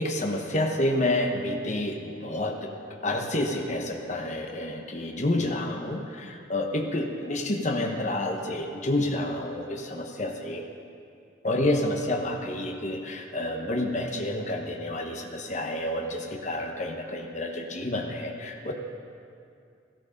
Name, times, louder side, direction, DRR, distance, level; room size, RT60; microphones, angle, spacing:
voice 1, 0.0-2.7 3.0-10.6 11.4-18.7, left 1 dB, 40° left, 2 dB, 1.0 m, -29 dB
14.0 x 12.5 x 5.2 m, 2.5 s
head